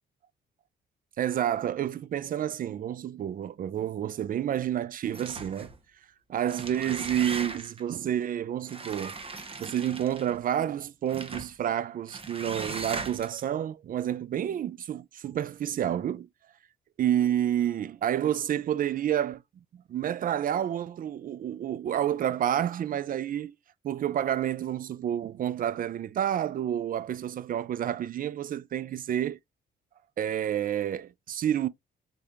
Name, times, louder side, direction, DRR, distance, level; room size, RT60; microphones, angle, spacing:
voice 1, 1.2-5.7 6.3-9.2 9.6-16.3 17.0-19.4 19.7-23.5 23.8-29.4 30.2-31.7, right 10 dB, 45° right, 0.4 m, -29 dB
sound 1, 5.1-5.8 6.4-7.8 8.7-10.4 11.1-11.5 12.1-13.4, right 3 dB, 30° right, 0.9 m, -38 dB
3.7 x 3.3 x 2.7 m
cardioid pair, 90°, 20 cm